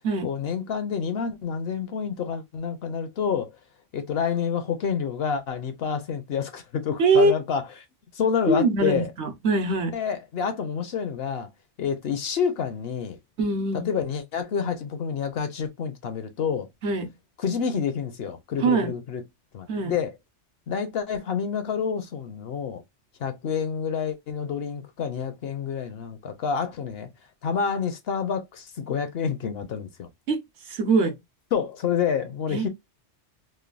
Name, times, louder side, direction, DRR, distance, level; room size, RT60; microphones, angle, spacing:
voice 1, 0.2-3.5 3.9-7.7 8.1-9.1 9.9-11.5 11.8-13.2 13.8-16.7 17.4-19.2 19.5-20.1 20.7-22.8 23.2-27.1 27.4-30.1 31.5-32.7, left 7 dB, 65° left, 0.8 m, -28 dB
voice 2, 7.0-7.3 8.5-9.9 13.4-13.9 16.8-17.1 18.6-18.9 19.7-19.9 30.3-30.4 30.7-31.1 32.5-32.7, right 3 dB, 70° right, 1.0 m, -22 dB
3.2 x 2.1 x 2.3 m
omnidirectional pair, 1.2 m